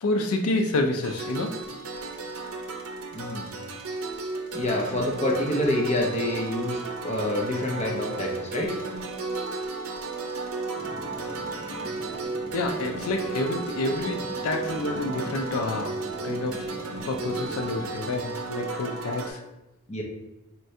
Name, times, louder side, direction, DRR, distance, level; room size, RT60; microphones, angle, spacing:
voice 1, 0.0-1.6 12.5-16.0 16.2-16.7 17.1-19.4, left 2 dB, 80° left, 5 dB, 0.4 m, -28 dB
sound 1, 1.0-19.3, right 3 dB, 80° right, 0.6 m, -34 dB
voice 2, 3.1-3.4 4.5-8.7 18.2-18.4 19.9-20.0, left 1 dB, 30° left, -1 dB, 0.7 m, -27 dB
sound 2, 10.8-18.0, equal, 25° right, 0.6 m, -42 dB
4.4 x 3.3 x 2.7 m, 0.97 s
head